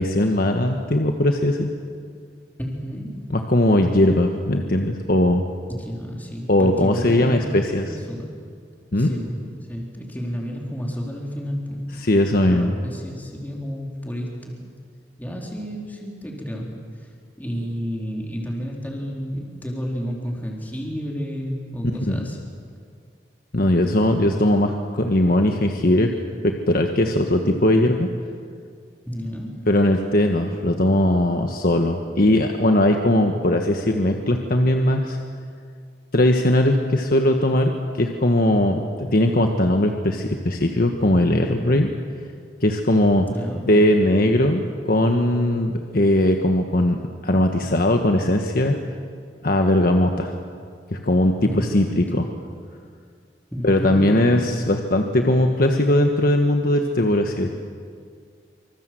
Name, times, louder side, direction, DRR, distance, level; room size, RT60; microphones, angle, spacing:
voice 1, 0.0-1.7 3.3-5.4 6.5-7.9 8.9-9.1 12.0-12.7 22.1-22.3 23.5-26.1 26.4-28.1 29.7-35.2 36.1-38.8 39.1-41.9 42.6-43.3 43.7-47.0 47.2-48.8 49.4-50.3 50.9-52.3 53.6-57.5, left 1 dB, 55° left, 4 dB, 1.4 m, -19 dB
voice 2, 2.6-3.3 5.7-8.3 9.0-9.4 9.7-12.1 12.4-14.5 15.2-16.7 17.0-17.1 17.4-22.4 29.1-29.7 43.3-43.7 51.4-52.0 53.5-54.2, equal, 10° left, -2 dB, 4.0 m, -31 dB
25.5 x 25.5 x 7.7 m, 2.1 s
head